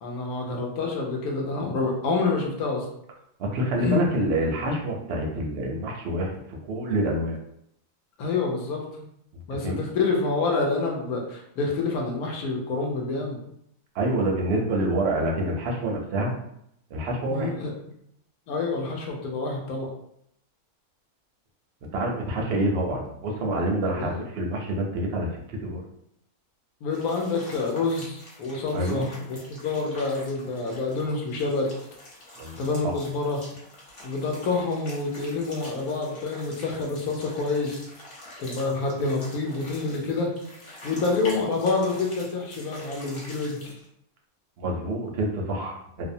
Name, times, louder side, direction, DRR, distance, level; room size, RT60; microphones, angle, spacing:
voice 1, 0.0-2.9 3.8-4.1 8.2-8.8 9.5-13.4 17.3-17.7 18.5-19.9 23.9-24.1 26.8-31.7 32.5-33.4 34.0-37.8 38.4-40.3 40.8-43.8, left 3 dB, 75° left, 0 dB, 1.1 m, -27 dB
voice 2, 3.4-6.3 6.7-7.4 9.6-9.8 13.9-16.3 16.9-17.5 21.9-25.8 28.7-29.1 32.4-32.6 44.6-46.0, right 1 dB, 65° right, 0 dB, 0.7 m, -27 dB
sound 1, 26.9-43.9, left 1 dB, 55° left, 1.2 m, -45 dB
2.7 x 2.0 x 2.6 m, 0.73 s
omnidirectional pair, 1.6 m